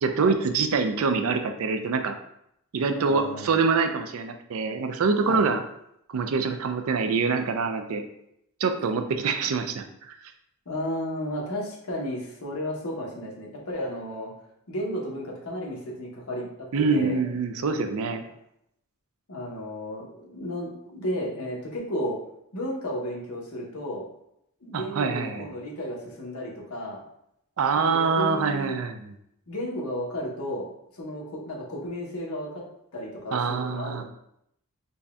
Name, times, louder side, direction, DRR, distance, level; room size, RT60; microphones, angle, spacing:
voice 1, 0.0-2.2 2.7-5.6 6.1-8.0 8.6-10.2 16.7-18.2 24.7-25.5 27.6-29.1 33.3-34.0, right 4 dB, 70° right, 7 dB, 0.4 m, -25 dB
voice 2, 3.0-3.6 5.2-5.5 10.7-14.3 14.7-17.2 19.3-22.2 22.5-24.1 24.6-27.0 27.9-28.8 29.5-30.7 31.0-32.6 32.9-34.0, equal, 75° left, -2 dB, 1.0 m, -33 dB
4.0 x 2.2 x 3.5 m, 0.76 s
head